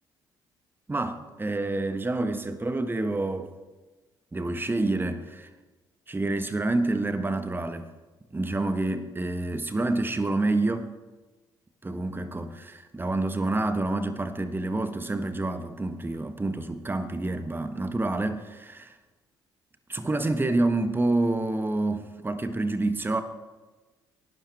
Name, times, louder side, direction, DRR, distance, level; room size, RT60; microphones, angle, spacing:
voice 1, 0.9-3.5 4.3-5.5 6.1-7.9 8.3-10.9 11.8-18.9 19.9-23.2, right 2 dB, 20° right, 1.3 m, -28 dB
29.0 x 12.0 x 3.4 m
figure-of-eight pair, 45°, 11 cm